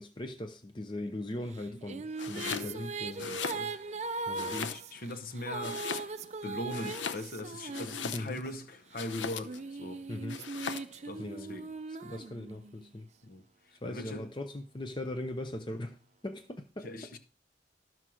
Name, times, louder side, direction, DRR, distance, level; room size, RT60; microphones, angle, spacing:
voice 1, 0.0-3.3 4.3-4.6 8.1-8.4 10.1-10.5 11.2-11.5 12.0-13.1 13.7-16.9, left 1 dB, 25° left, 0.6 m, -39 dB
sound 1, 1.5-8.5 9.2-12.9, right 4 dB, 35° right, 0.5 m, -40 dB
Domestic sounds home sounds, 2.1-2.7 3.1-4.0 4.3-5.1 5.6-6.4 6.7-8.5 8.9-9.7 10.3-11.0, left 6 dB, 85° left, 0.7 m, -39 dB
voice 2, 2.3-2.9 3.3-3.8 4.4-6.2 6.4-10.1 10.9-11.7 13.2-14.3 16.8-17.2, left 1 dB, 50° left, 1.0 m, -41 dB
12.5 x 4.5 x 6.3 m
head